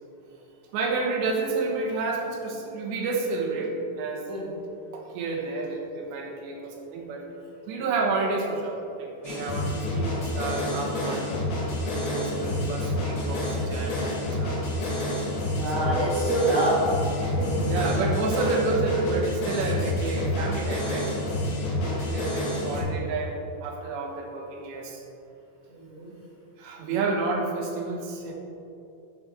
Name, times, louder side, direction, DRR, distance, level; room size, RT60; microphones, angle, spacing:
voice 1, 0.7-4.5 4.9-7.2 7.7-11.3 11.9-14.9 15.7-16.2 17.6-21.1 21.8-25.0 26.6-28.3, right 3 dB, 85° right, 0 dB, 3.4 m, -30 dB
voice 2, 4.2-4.5 15.6-17.6 25.7-26.1, right 1 dB, 55° right, -8 dB, 1.4 m, -27 dB
sound 1, 9.2-22.8, left 1 dB, 70° left, 3.8 m, -28 dB
11.5 x 7.1 x 3.7 m, 2.8 s
omnidirectional pair, 4.9 m